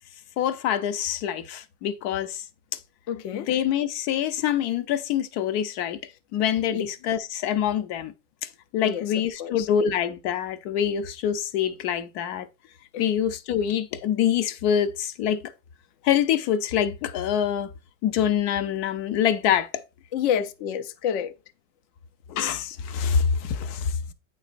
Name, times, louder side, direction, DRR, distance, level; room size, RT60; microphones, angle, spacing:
voice 1, 0.4-2.4 3.3-6.0 6.3-8.1 8.7-12.5 13.0-15.4 16.0-17.7 18.0-19.8 22.3-24.1, left 9 dB, 65° left, 1.0 m, -25 dB
voice 2, 3.1-3.5 6.7-6.8 8.8-9.1 9.4-9.7 12.9-13.1 20.1-21.3, left 9 dB, 85° left, 0.6 m, -28 dB
8.9 x 6.0 x 2.5 m
omnidirectional pair, 2.0 m